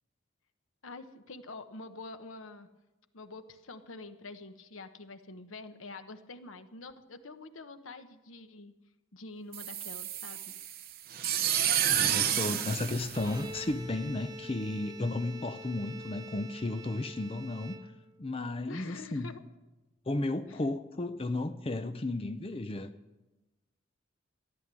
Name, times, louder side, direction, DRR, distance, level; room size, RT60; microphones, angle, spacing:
voice 1, 0.8-2.7 3.1-8.7 9.1-10.4 18.7-19.4 20.5-20.6, left 3 dB, 80° left, 1.1 m, -46 dB
sound 1, 9.5-13.9, right 9 dB, 50° right, 0.9 m, -30 dB
voice 2, 11.6-17.7 18.2-19.4 20.1-22.9, left 2 dB, 30° left, 0.6 m, -34 dB
Bowed string instrument, 13.1-18.3, right 1 dB, 20° right, 0.9 m, -46 dB
14.5 x 11.0 x 7.6 m
head